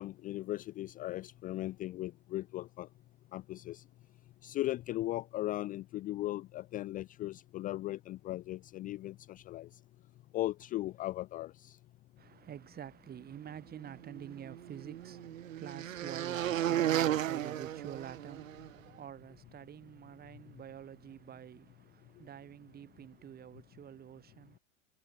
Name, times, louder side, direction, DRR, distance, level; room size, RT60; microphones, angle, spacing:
voice 1, 0.0-2.9 3.3-3.8 4.4-9.7 10.3-11.8, left 16 dB, 20° left, 0.6 m, -38 dB
voice 2, 12.2-24.6, right 9 dB, 25° right, 2.6 m, -48 dB
sound 1, 14.1-18.7, right 11 dB, 75° right, 0.6 m, -34 dB
figure-of-eight pair, 90°, 40 cm